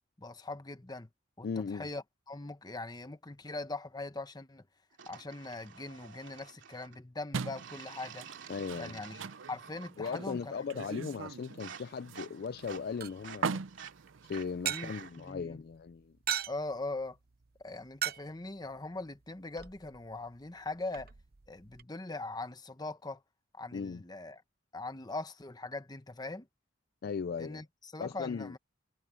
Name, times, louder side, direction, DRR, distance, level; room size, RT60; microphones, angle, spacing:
voice 1, 0.2-1.1 1.4-4.7 5.1-8.3 8.8-10.5 14.6-15.6 16.5-17.2 17.6-21.1 21.5-23.2 23.5-24.4 24.7-26.5 27.4-28.6, left 2 dB, 20° left, 1.1 m, -41 dB
voice 2, 1.4-1.9 8.5-9.0 10.0-13.6 14.3-16.2 23.7-24.0 27.0-27.6 28.0-28.5, left 5 dB, 55° left, 0.4 m, -38 dB
sound 1, 5.0-7.0 7.6-10.0 10.3-10.7 11.1-15.3, right 7 dB, 70° right, 3.0 m, -50 dB
sound 2, 7.3-15.1, right 5 dB, 90° right, 0.6 m, -42 dB
sound 3, 12.5-21.8, right 10 dB, 55° right, 0.8 m, -42 dB
head